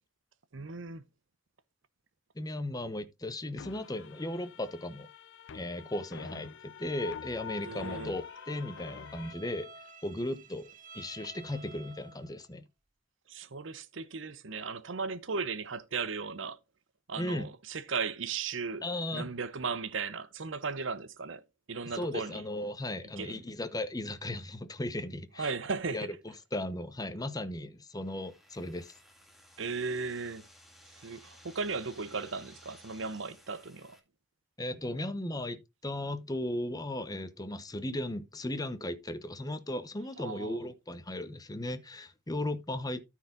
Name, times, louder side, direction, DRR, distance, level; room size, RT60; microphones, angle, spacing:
voice 1, 0.5-1.0 7.6-8.1 13.3-16.6 17.1-18.9 19.1-22.4 23.2-23.4 25.4-26.1 29.6-30.5 31.0-34.0 40.2-40.6, right 4 dB, 75° right, 0.8 m, -36 dB
voice 2, 2.4-5.1 5.5-9.7 10.0-10.7 10.9-12.6 17.2-17.5 18.8-19.3 21.9-25.5 25.9-26.1 26.5-28.9 34.6-43.0, left 1 dB, 20° left, 0.9 m, -36 dB
sound 1, 3.6-9.3, left 7 dB, 65° left, 0.5 m, -45 dB
Bowed string instrument, 7.8-12.5, right 3 dB, 45° right, 1.5 m, -53 dB
sound 2, 27.9-34.0, equal, ahead, 1.9 m, -57 dB
13.5 x 4.7 x 3.8 m
head